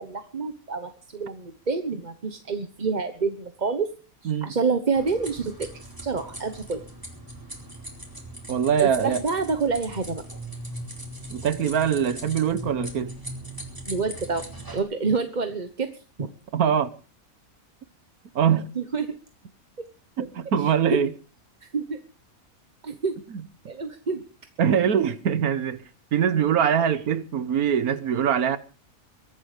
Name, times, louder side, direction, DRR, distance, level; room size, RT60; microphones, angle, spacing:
voice 1, 0.0-3.9 4.2-5.7 6.0-6.8 8.8-10.2 13.9-14.4 14.7-15.9 16.2-16.3 18.7-19.1 20.9-21.1 21.6-22.0 22.8-23.1 23.6-24.2 26.9-27.0, right 4 dB, 35° right, 1.1 m, -27 dB
sound 1, 4.9-14.8, equal, 15° right, 4.5 m, -39 dB
voice 2, 8.5-9.2 11.3-13.1 16.5-16.9 18.3-18.7 20.2-21.1 24.6-25.8 26.1-28.6, right 8 dB, 85° right, 1.6 m, -23 dB
23.0 x 11.0 x 5.0 m
omnidirectional pair, 1.5 m